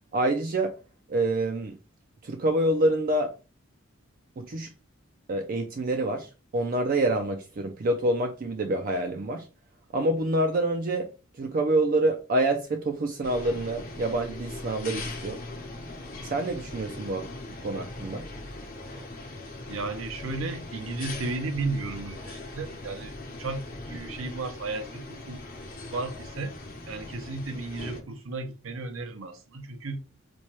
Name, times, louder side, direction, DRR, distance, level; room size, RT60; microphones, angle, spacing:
voice 1, 0.1-0.7 1.1-1.8 2.2-3.3 4.4-4.7 5.3-9.5 9.9-11.1 11.3-15.4 16.2-17.3 17.6-18.3, right 1 dB, 45° right, 0.4 m, -27 dB
sound 1, 13.2-28.0, left 2 dB, 45° left, 0.9 m, -40 dB
voice 2, 19.7-25.4 25.9-26.6 26.9-30.0, right 3 dB, 80° right, 0.7 m, -34 dB
4.3 x 2.2 x 3.0 m
head